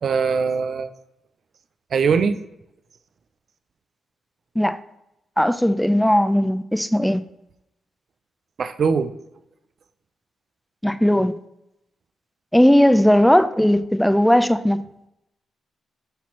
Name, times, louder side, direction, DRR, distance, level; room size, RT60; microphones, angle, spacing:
voice 1, 0.0-0.9 1.9-2.4 8.6-9.1, right 5 dB, 60° right, 0.6 m, -21 dB
voice 2, 5.4-7.2 10.8-11.3 12.5-14.8, equal, 5° left, 0.6 m, -17 dB
12.0 x 4.2 x 3.0 m
hypercardioid pair, 45°, 0 cm